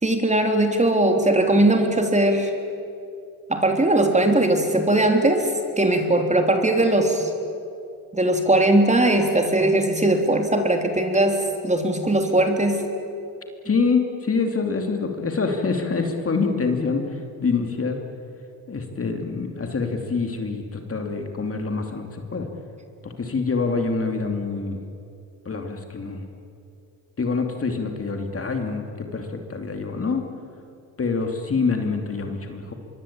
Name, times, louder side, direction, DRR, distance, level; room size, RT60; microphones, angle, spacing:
voice 1, 0.0-2.5 3.5-7.3 8.1-12.8, right 1 dB, 15° right, 4 dB, 3.6 m, -20 dB
voice 2, 13.6-18.0 18.7-22.5 23.0-24.8 25.4-26.2 27.2-30.3 31.0-32.7, left 4 dB, 30° left, 4 dB, 2.9 m, -26 dB
24.5 x 23.0 x 8.9 m, 2.5 s
supercardioid pair, 80°, 42 cm